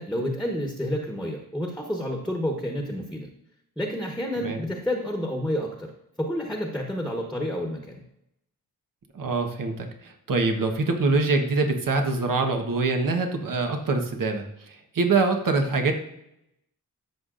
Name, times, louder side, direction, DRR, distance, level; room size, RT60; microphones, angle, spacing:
voice 1, 0.0-3.3 3.8-5.9 6.2-8.0, equal, ahead, 1 dB, 1.3 m, -29 dB
voice 2, 9.1-15.9, right 3 dB, 65° right, 4 dB, 1.3 m, -24 dB
13.5 x 5.7 x 2.6 m, 0.82 s
cardioid pair, 70°, 36 cm